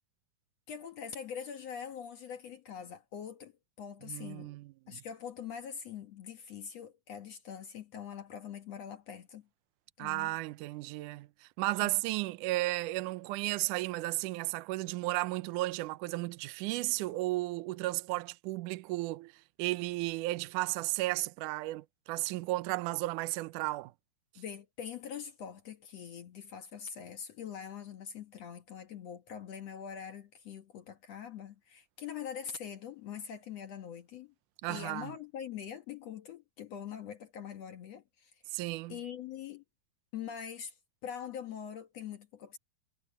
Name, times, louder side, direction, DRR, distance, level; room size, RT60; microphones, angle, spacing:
voice 1, 0.7-4.5 4.9-9.5 10.0-10.3 11.8-12.0 24.4-34.3 34.7-38.4 38.9-39.6 40.1-40.8 41.0-42.6, left 8 dB, 60° left, 1.8 m, -43 dB
voice 2, 4.0-5.0 10.0-19.3 19.6-23.9 34.6-35.1 38.5-39.0, right 19 dB, 80° right, 1.9 m, -34 dB
omnidirectional pair, 4.4 m